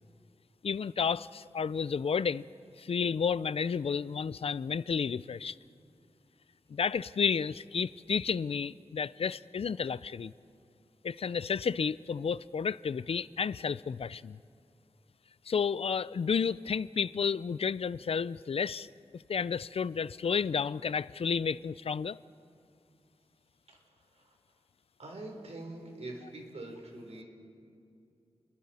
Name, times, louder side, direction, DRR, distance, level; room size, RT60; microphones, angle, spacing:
voice 1, 0.6-2.5 2.8-5.6 6.7-10.3 11.0-14.4 15.5-22.2, left 6 dB, 65° left, 0.4 m, -31 dB
voice 2, 25.0-27.2, right 2 dB, 75° right, 3.7 m, -44 dB
30.0 x 22.0 x 4.3 m
wide cardioid pair, 100°, 11 cm